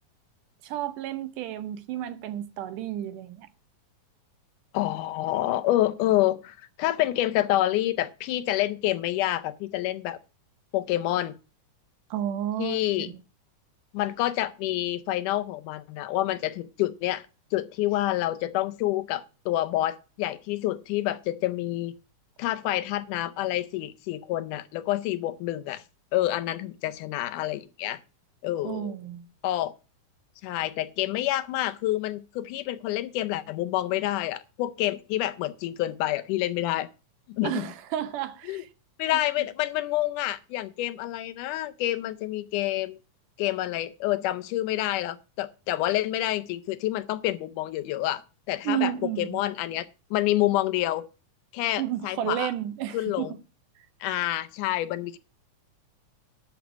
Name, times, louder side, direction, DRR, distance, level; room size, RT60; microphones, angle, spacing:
voice 1, 0.6-3.5 12.1-12.8 28.6-29.2 37.4-38.7 48.6-49.4 51.8-53.4 54.1-54.2, right 11 dB, 80° right, 2.4 m, -31 dB
voice 2, 4.7-10.2 10.7-11.3 12.6-13.1 13.9-17.2 17.5-21.9 22.4-25.8 26.1-28.0 28.4-29.0 29.4-29.7 30.4-36.9 37.3-37.6 38.5-38.6 39.0-43.0 43.4-48.2 48.5-51.0 51.5-52.5 52.9-53.3 54.0-55.2, left 15 dB, 80° left, 2.1 m, -28 dB
11.5 x 6.4 x 6.1 m
omnidirectional pair, 3.8 m